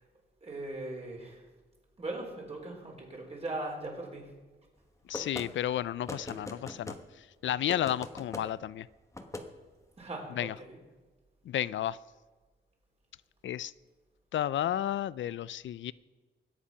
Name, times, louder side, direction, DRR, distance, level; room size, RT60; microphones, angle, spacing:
voice 1, 0.4-1.4 2.0-4.3 10.0-10.8, right 2 dB, 35° right, 0 dB, 4.1 m, -39 dB
voice 2, 5.1-6.9 7.4-8.9 10.4-10.5 11.5-12.0 13.4-13.7 14.3-15.9, left 11 dB, 80° left, 19 dB, 0.4 m, -32 dB
sound 1, 5.1-5.5 6.1-7.0 7.7-8.5 9.1-9.5, left 2 dB, 15° left, 1.2 m, -40 dB
21.5 x 8.6 x 5.6 m, 1.3 s
wide cardioid pair, 130°, 19 cm